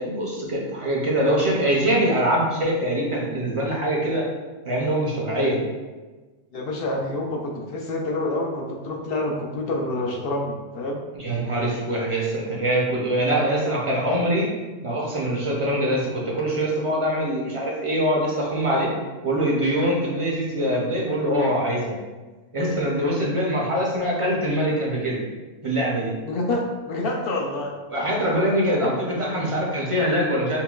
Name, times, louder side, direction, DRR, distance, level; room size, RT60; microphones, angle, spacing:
voice 1, 0.0-4.2 4.7-5.6 11.1-14.5 14.8-18.9 19.2-22.0 22.5-25.2 25.6-26.1 27.9-30.6, equal, 35° right, -3 dB, 0.5 m, -23 dB
voice 2, 6.5-11.0 26.3-27.7 28.8-28.9, left 2 dB, 60° left, 1 dB, 0.7 m, -27 dB
5.6 x 2.2 x 2.3 m, 1.2 s
omnidirectional pair, 1.2 m